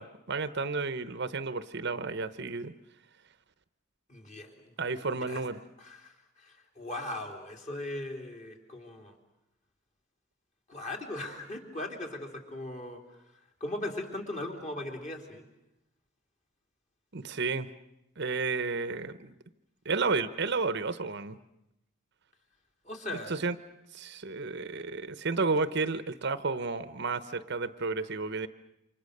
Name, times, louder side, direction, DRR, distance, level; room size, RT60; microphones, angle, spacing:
voice 1, 0.0-2.7 4.8-5.6 17.1-17.7 18.2-19.3 19.8-21.4 23.1-23.6 23.9-28.5, right 4 dB, 50° right, 13 dB, 0.9 m, -32 dB
voice 2, 4.1-4.7 5.3-5.4 5.8-6.1 6.4-9.1 10.7-13.0 13.6-15.4 22.8-23.3, left 1 dB, 35° left, 2 dB, 3.3 m, -38 dB
28.5 x 25.5 x 6.7 m, 0.85 s
head